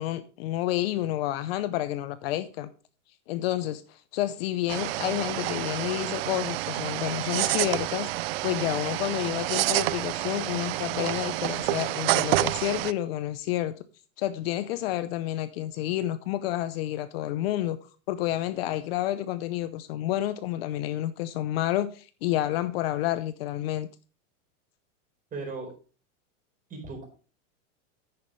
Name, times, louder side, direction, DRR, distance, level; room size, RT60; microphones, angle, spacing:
voice 1, 0.0-2.7 3.3-8.1 8.4-13.7 14.2-17.8 18.1-23.9, left 14 dB, 50° left, 0.7 m, -29 dB
sound 1, 4.7-12.9, right 18 dB, 55° right, 0.5 m, -28 dB
voice 2, 25.3-25.7 26.7-27.0, right 3 dB, 20° right, 4.5 m, -36 dB
10.0 x 9.2 x 3.2 m
supercardioid pair, 150°, 38 cm